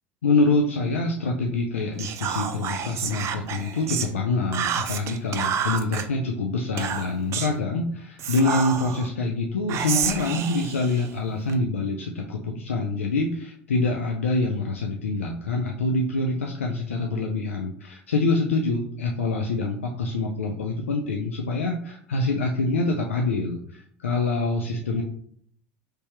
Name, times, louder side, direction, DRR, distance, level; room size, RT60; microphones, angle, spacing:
voice 1, 0.2-25.0, left 3 dB, 90° left, 1 dB, 0.4 m, -25 dB
Whispering, 2.0-4.1 4.5-6.1 6.8-7.6 8.2-9.1 9.7-11.6, right 8 dB, 45° right, 0.4 m, -29 dB
3.3 x 2.8 x 3.2 m, 0.63 s
hypercardioid pair, 80°, 7 cm